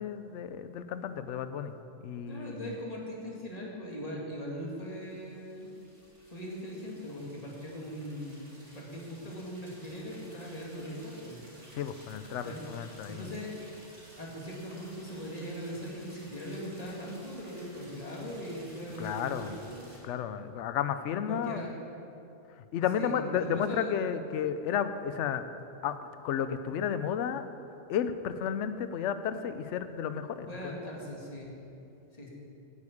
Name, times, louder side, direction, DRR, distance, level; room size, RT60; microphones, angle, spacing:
voice 1, 0.0-1.8 2.0-2.7 11.7-13.3 19.0-19.6 20.0-21.6 22.6-25.4 25.8-26.0 26.2-27.4 27.9-30.7, left 8 dB, 75° left, 11 dB, 0.9 m, -32 dB
voice 2, 2.3-5.7 6.3-11.4 12.4-12.7 13.1-13.5 14.2-19.9 21.3-21.7 22.9-23.1 23.4-23.9 30.5-31.5 32.1-32.3, equal, 30° left, -3 dB, 2.2 m, -40 dB
sound 1, 4.6-20.0, equal, 65° right, 3.9 m, -55 dB
9.6 x 8.6 x 8.6 m, 2.8 s
omnidirectional pair, 1.3 m